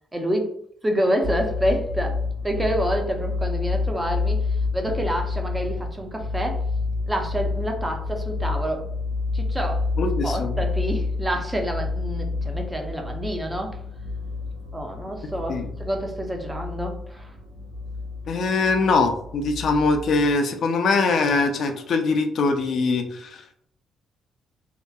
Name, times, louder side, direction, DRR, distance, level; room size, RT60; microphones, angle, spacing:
voice 1, 0.1-0.5 0.8-2.2 2.4-6.6 7.1-8.9 9.3-9.9 10.2-13.8 14.7-17.3, equal, 15° right, 3 dB, 0.5 m, -27 dB
sound 1, 1.2-20.4, left 3 dB, 70° right, 1.2 m, -29 dB
voice 2, 10.0-10.6 15.5-15.7 18.3-23.5, left 3 dB, 60° left, 5 dB, 0.4 m, -22 dB
2.7 x 2.1 x 2.3 m, 0.66 s
supercardioid pair, 70°, 0 cm